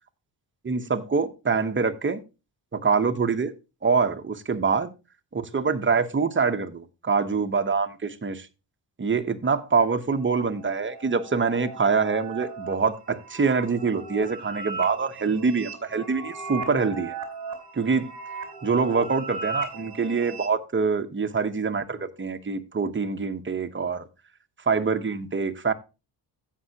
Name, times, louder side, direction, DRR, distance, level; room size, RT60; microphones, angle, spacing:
voice 1, 0.6-2.2 2.7-3.5 3.8-4.9 5.3-8.5 9.0-17.2 17.7-18.1 18.6-24.1 24.7-25.7, right 5 dB, 25° right, 1.0 m, -25 dB
sound 1, 10.1-20.5, right 4 dB, 50° right, 2.9 m, -37 dB
16.0 x 5.5 x 2.9 m
cardioid pair, 105°, 43 cm